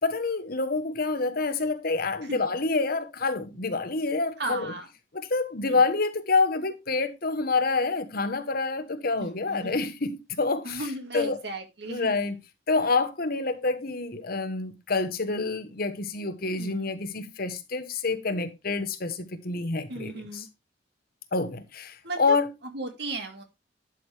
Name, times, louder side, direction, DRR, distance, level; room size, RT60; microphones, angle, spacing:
voice 1, 0.0-4.7 5.1-10.8 11.1-11.4 11.9-12.4 12.7-20.4 21.3-22.5, left 3 dB, 55° left, 1.2 m, -27 dB
voice 2, 4.4-4.9 5.7-5.8 9.2-9.8 10.6-12.1 16.6-16.9 19.9-20.5 22.0-22.4 22.7-23.4, right 2 dB, 65° right, 2.2 m, -36 dB
11.5 x 6.3 x 3.4 m
head